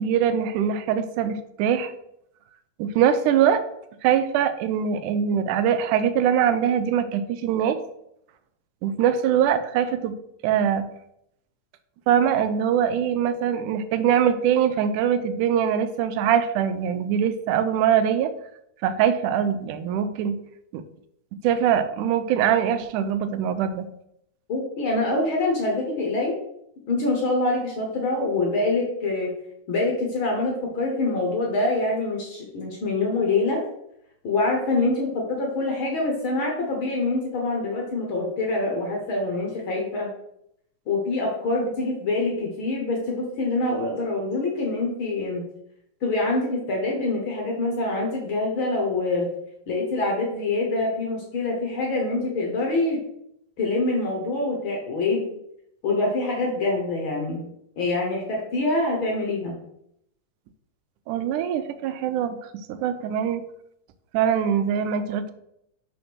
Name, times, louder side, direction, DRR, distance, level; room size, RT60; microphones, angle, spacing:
voice 1, 0.0-1.9 2.8-3.6 4.0-7.8 8.8-10.2 10.4-10.9 12.1-18.3 18.8-20.4 20.7-20.8 21.4-23.9 61.1-62.4 62.7-63.4 64.1-65.3, right 8 dB, 90° right, 10 dB, 2.1 m, -22 dB
voice 2, 24.5-26.4 26.9-29.3 29.7-33.6 34.2-40.1 40.9-45.4 46.0-49.3 49.7-53.0 53.6-55.3 55.8-57.5 57.8-59.6, left 2 dB, 55° left, 0 dB, 1.5 m, -25 dB
5.1 x 4.3 x 6.0 m, 0.76 s
omnidirectional pair, 3.5 m